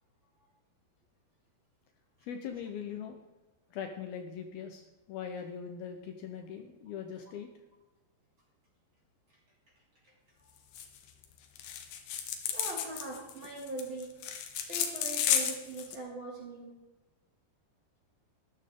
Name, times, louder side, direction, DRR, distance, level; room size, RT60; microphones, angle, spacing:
voice 1, 2.2-3.1 3.7-7.5, left 7 dB, 70° left, 5 dB, 2.5 m, -41 dB
sound 1, 10.7-11.0 11.2-11.3 11.6-16.0, left 9 dB, 90° left, 3.6 m, -32 dB
voice 2, 12.5-14.2 14.7-16.8, right 2 dB, 30° right, -3 dB, 3.0 m, -41 dB
14.0 x 11.5 x 3.7 m, 1.1 s
omnidirectional pair, 5.0 m